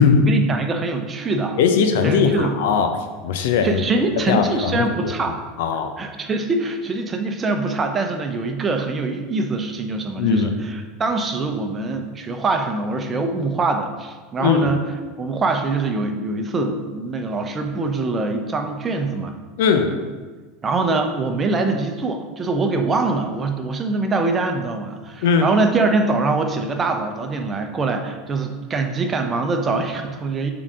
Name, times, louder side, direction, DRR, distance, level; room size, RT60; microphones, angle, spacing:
voice 1, 0.3-1.6 2.0-2.5 3.6-5.4 6.0-14.8 15.2-19.3 20.6-30.5, right 3 dB, 25° right, 5 dB, 0.9 m, -23 dB
voice 2, 1.6-2.9 3.2-3.8 4.3-5.9 10.2-10.5 14.4-14.7 19.6-19.9 25.2-25.5, left 6 dB, 70° left, 6 dB, 0.8 m, -19 dB
7.3 x 4.0 x 5.0 m, 1.4 s
hypercardioid pair, 85°, 0 cm